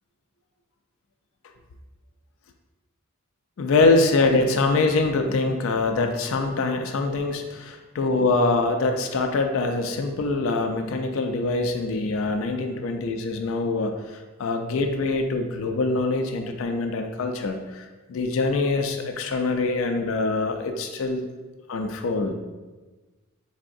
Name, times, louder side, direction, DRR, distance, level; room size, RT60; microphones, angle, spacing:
voice 1, 3.6-21.3 21.7-22.3, left 3 dB, 70° left, 5 dB, 0.4 m, -24 dB
4.6 x 3.4 x 2.5 m, 1.2 s
head